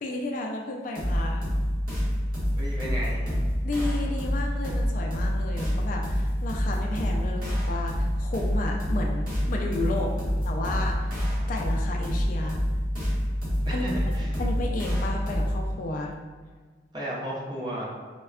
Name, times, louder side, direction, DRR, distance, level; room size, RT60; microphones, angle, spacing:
voice 1, 0.0-1.5 3.6-10.1 10.4-11.1 11.5-12.6 13.7-13.9 14.4-16.1, left 2 dB, 45° left, 1 dB, 0.3 m, -32 dB
sound 1, 0.9-15.7, equal, 50° right, 1.2 m, -27 dB
voice 2, 2.5-3.2 9.9-10.3 13.6-14.3 16.9-17.9, equal, 20° right, -5 dB, 0.5 m, -34 dB
4.1 x 2.2 x 2.3 m, 1.5 s
head